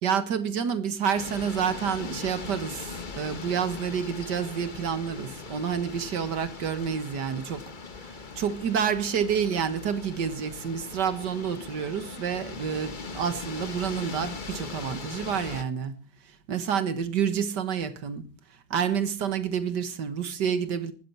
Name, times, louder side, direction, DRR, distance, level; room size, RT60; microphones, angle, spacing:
voice 1, 0.0-7.6 8.4-16.0 16.5-18.3 18.7-20.9, right 7 dB, 70° right, 2.0 m, -29 dB
sound 1, 1.1-15.6, left 4 dB, 30° left, 1.1 m, -40 dB
18.5 x 13.5 x 4.5 m
omnidirectional pair, 1.9 m